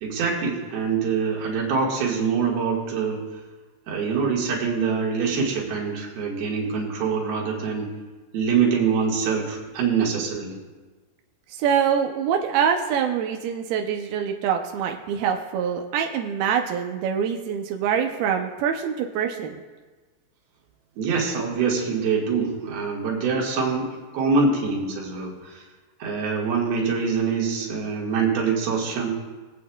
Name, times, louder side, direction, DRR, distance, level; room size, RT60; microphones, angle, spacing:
voice 1, 0.0-3.2 3.9-7.9 8.3-10.6 21.0-25.6 26.0-29.1, right 5 dB, 65° right, -2 dB, 3.4 m, -24 dB
voice 2, 11.5-19.6, right 8 dB, 80° right, 3 dB, 2.2 m, -25 dB
24.0 x 8.4 x 2.3 m, 1.3 s
omnidirectional pair, 5.0 m